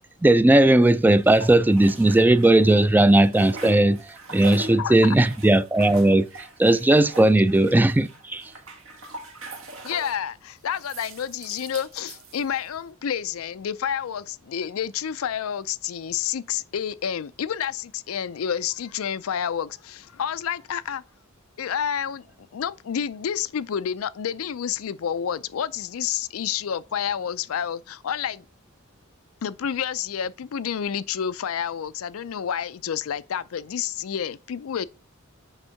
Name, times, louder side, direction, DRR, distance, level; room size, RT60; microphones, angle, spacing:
voice 1, 0.2-4.0 4.3-6.3 6.6-8.5, right 1 dB, 10° right, 0.3 m, -17 dB
sound 1, 0.8-2.8 3.0-10.3 10.7-12.8, right 2 dB, 75° right, 1.5 m, -41 dB
voice 2, 4.8-5.2 9.8-21.0 21.6-22.2 22.5-28.4 29.4-34.9, left 8 dB, 90° left, 0.4 m, -29 dB
8.0 x 3.6 x 5.6 m
head